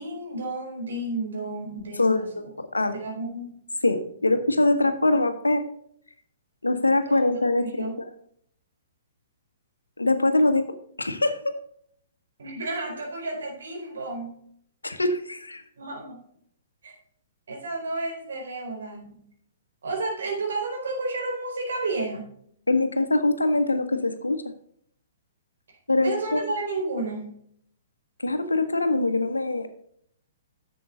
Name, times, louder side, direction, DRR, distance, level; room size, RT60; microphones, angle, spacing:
voice 1, 0.0-2.3 2.7-3.6 7.1-7.3 7.5-8.0 12.4-14.3 15.8-16.2 16.8-17.0 17.5-19.2 19.8-22.3 26.0-27.4, right 2 dB, 65° right, 0 dB, 4.4 m, -32 dB
voice 2, 2.0-2.3 2.6-3.0 3.8-5.7 6.6-7.9 10.0-11.5 14.8-15.6 22.7-24.4 25.9-26.4 28.2-29.7, left 2 dB, 85° left, 9 dB, 1.2 m, -23 dB
11.0 x 7.7 x 3.8 m, 0.65 s
figure-of-eight pair, 120°, 0 cm